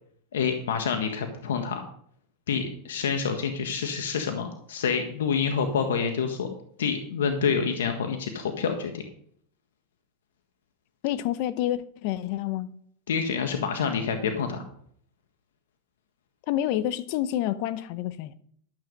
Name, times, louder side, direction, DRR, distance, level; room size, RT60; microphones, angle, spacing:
voice 1, 0.3-1.8 2.5-6.5 6.8-9.0 13.1-14.6, left 6 dB, 90° left, 1.4 m, -27 dB
voice 2, 11.0-12.7 16.5-18.3, left 13 dB, 60° left, 0.8 m, -28 dB
12.5 x 8.1 x 5.3 m
supercardioid pair, 120°, 0 cm